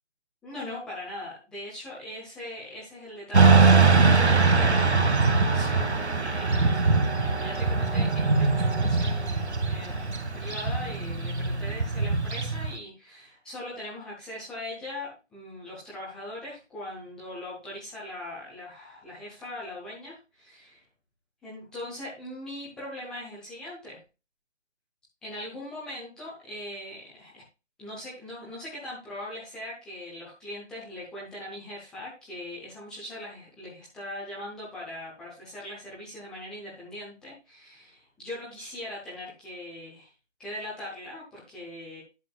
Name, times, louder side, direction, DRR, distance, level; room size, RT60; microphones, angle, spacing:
voice 1, 0.4-6.8 7.3-20.8 21.4-24.0 25.2-27.4 27.8-40.1 40.4-42.0, left 1 dB, ahead, -6 dB, 0.8 m, -40 dB
Motorcycle / Traffic noise roadway noise, 3.3-12.7, right 4 dB, 65° right, 2.1 m, -22 dB
11.0 x 7.5 x 2.4 m, 0.28 s
figure-of-eight pair, 150°, 35 cm